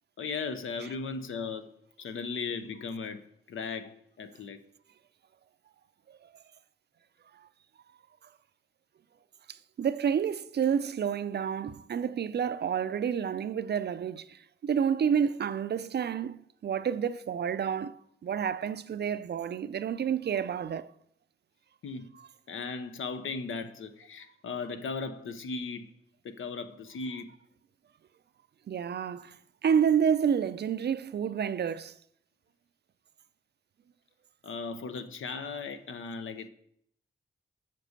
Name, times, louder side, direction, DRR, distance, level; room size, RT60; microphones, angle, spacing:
voice 1, 0.2-1.7 2.0-3.2 3.5-4.6 21.8-22.1 22.5-25.9 26.2-27.3 34.4-36.5, left 4 dB, 80° left, 0.8 m, -37 dB
voice 2, 9.5-20.9 28.7-29.4 29.6-31.9, right 7 dB, 55° right, 0.4 m, -29 dB
7.5 x 5.4 x 6.5 m
wide cardioid pair, 100°, 21 cm